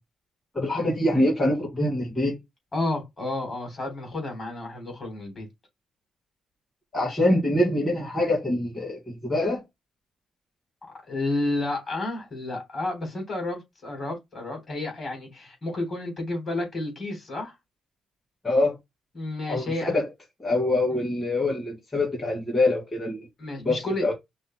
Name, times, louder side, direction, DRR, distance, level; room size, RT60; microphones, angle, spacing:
voice 1, 0.5-2.3 6.9-9.6 18.4-18.8 19.5-20.1 20.4-23.2 23.6-24.1, left 1 dB, 15° left, 1.9 m, -24 dB
voice 2, 2.7-5.5 11.1-17.6 19.1-19.9 20.9-21.1 23.4-24.1, left 2 dB, 30° left, 3.4 m, -31 dB
5.3 x 2.1 x 4.4 m
cardioid pair, 120°, 0 cm